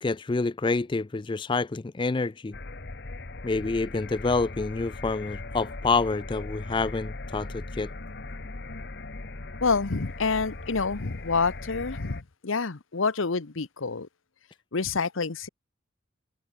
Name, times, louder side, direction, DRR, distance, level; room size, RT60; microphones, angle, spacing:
voice 1, 0.0-2.6 3.4-7.9, left 3 dB, 25° left, 0.4 m, -27 dB
sound 1, 2.5-12.2, left 2 dB, 50° left, 1.2 m, -39 dB
voice 2, 9.6-14.1 14.7-15.5, left 4 dB, 75° left, 1.0 m, -28 dB
head